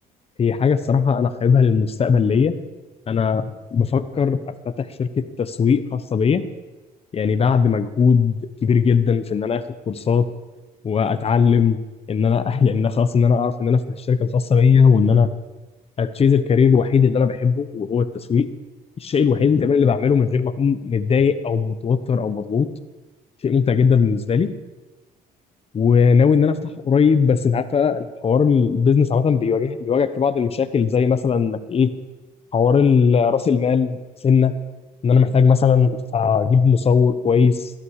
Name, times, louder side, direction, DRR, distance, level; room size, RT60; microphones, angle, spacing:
voice 1, 0.4-2.5 3.1-6.4 7.1-10.3 10.8-11.8 12.1-15.3 16.0-18.5 19.0-22.7 23.4-24.5 25.7-31.9 32.5-34.0 34.2-34.5 35.0-37.7, left 6 dB, 35° left, 12 dB, 1.1 m, -18 dB
18.5 x 12.0 x 4.9 m, 1.2 s
cardioid pair, 110°, 17 cm